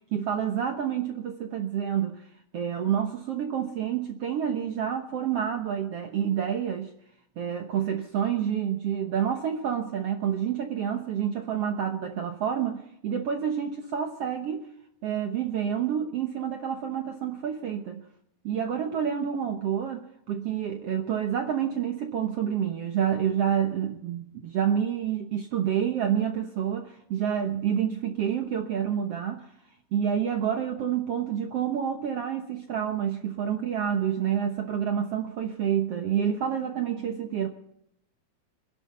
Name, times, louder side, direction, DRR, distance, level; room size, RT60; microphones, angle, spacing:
voice 1, 0.1-2.2 2.5-6.9 7.4-14.7 15.0-18.0 18.4-29.5 29.9-37.5, right 9 dB, 65° right, 4 dB, 1.5 m, -28 dB
26.0 x 11.5 x 4.2 m, 0.75 s
omnidirectional pair, 4.1 m